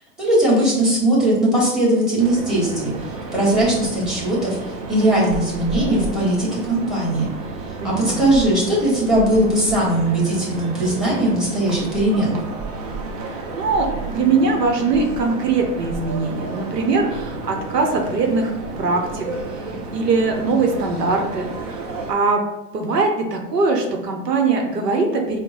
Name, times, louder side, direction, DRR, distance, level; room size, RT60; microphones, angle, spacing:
voice 1, 0.2-2.9 3.3-4.6 4.9-7.3 7.6-12.4, right 1 dB, ahead, -5 dB, 1.4 m, -19 dB
sound 1, 2.2-22.1, right 3 dB, 30° right, 0.3 m, -31 dB
voice 2, 7.8-8.2 13.2-19.3 19.5-22.4 22.7-25.4, right 4 dB, 80° right, 2 dB, 0.9 m, -21 dB
4.5 x 2.2 x 4.0 m, 0.95 s
hypercardioid pair, 110°, 47 cm